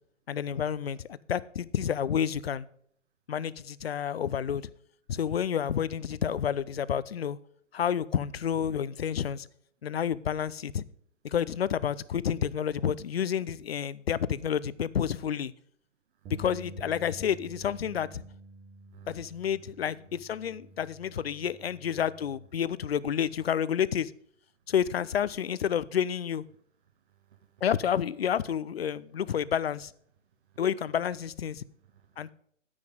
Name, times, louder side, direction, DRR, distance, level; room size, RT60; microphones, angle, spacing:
voice 1, 0.3-2.7 3.3-4.7 5.1-7.4 7.7-9.5 9.8-10.8 11.2-15.5 16.3-18.2 19.1-24.1 24.7-26.4 27.6-29.9 30.6-31.6 32.2-32.3, left 8 dB, 55° left, 0.6 m, -30 dB
Bass guitar, 16.2-22.5, right 3 dB, 10° right, 0.9 m, -49 dB
voice 2, 19.7-20.1 26.9-27.6 30.4-30.6 31.8-32.3, right 12 dB, 45° right, 1.4 m, -57 dB
10.0 x 9.8 x 3.7 m
figure-of-eight pair, 125°, 38 cm